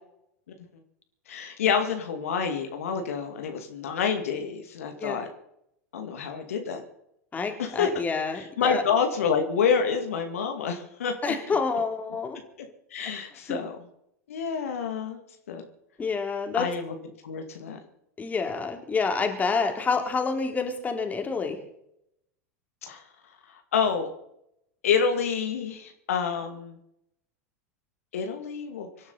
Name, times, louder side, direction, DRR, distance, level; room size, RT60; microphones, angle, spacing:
voice 1, 1.3-5.3 5.9-6.8 7.6-7.9 8.3-11.3 12.9-13.8 14.3-15.2 15.5-15.6 16.5-16.9 17.2-17.8 22.8-23.0 23.7-24.1 24.8-26.8 28.1-28.9, left 6 dB, 65° left, 5 dB, 2.2 m, -28 dB
voice 2, 7.3-8.8 11.2-12.4 16.0-16.6 18.2-21.6, left 4 dB, 20° left, 4 dB, 3.2 m, -28 dB
25.5 x 11.5 x 4.1 m, 0.76 s
figure-of-eight pair, 85°, 8 cm